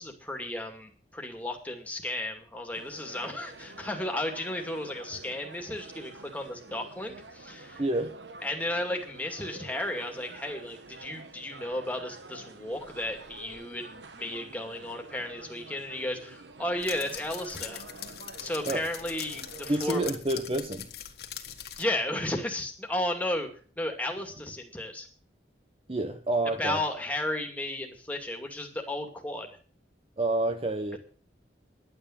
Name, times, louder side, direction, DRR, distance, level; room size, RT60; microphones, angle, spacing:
voice 1, 0.0-7.8 8.4-17.8 18.4-20.0 21.8-23.5 23.8-25.1 26.6-29.5, left 1 dB, 10° left, 3 dB, 2.4 m, -34 dB
sound 1, 2.7-20.2, right 3 dB, 85° right, 1.2 m, -48 dB
voice 2, 7.8-8.1 18.6-18.9 19.7-20.9 25.9-26.8 30.2-31.0, right 2 dB, 30° right, 7 dB, 0.9 m, -28 dB
sound 2, 12.8-13.6 16.8-21.8, left 10 dB, 65° left, 1.7 m, -42 dB
11.5 x 9.1 x 7.4 m, 0.41 s
head